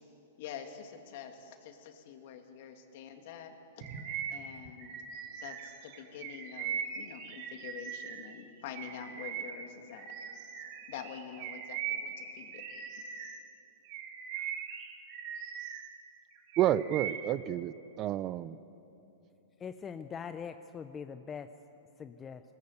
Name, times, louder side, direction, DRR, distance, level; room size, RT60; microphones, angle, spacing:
voice 1, 0.4-3.9 4.3-4.9 5.4-10.1 10.9-12.6, left 8 dB, 55° left, 5 dB, 2.4 m, -46 dB
Bird vocalization bird call bird song, 3.8-8.3 8.7-13.5 13.9-15.9 16.3-17.4, right 7 dB, 50° right, 2.8 m, -40 dB
voice 2, 16.6-18.6, right 12 dB, 35° right, 17 dB, 0.5 m, -30 dB
voice 3, 19.6-21.5 22.0-22.4, left 7 dB, 20° left, 9 dB, 0.6 m, -42 dB
20.0 x 19.5 x 8.1 m, 2.9 s
hypercardioid pair, 130°, 0 cm